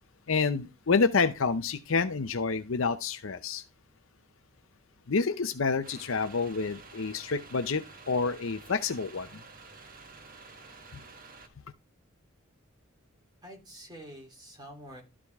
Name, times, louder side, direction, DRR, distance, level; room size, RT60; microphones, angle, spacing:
voice 1, 0.3-3.6 5.1-9.4, left 4 dB, 70° left, 0.7 m, -28 dB
sound 1, 5.8-11.5, right 4 dB, 45° right, 1.3 m, -50 dB
voice 2, 13.4-15.0, equal, 20° right, 3.4 m, -47 dB
12.5 x 5.0 x 3.6 m
head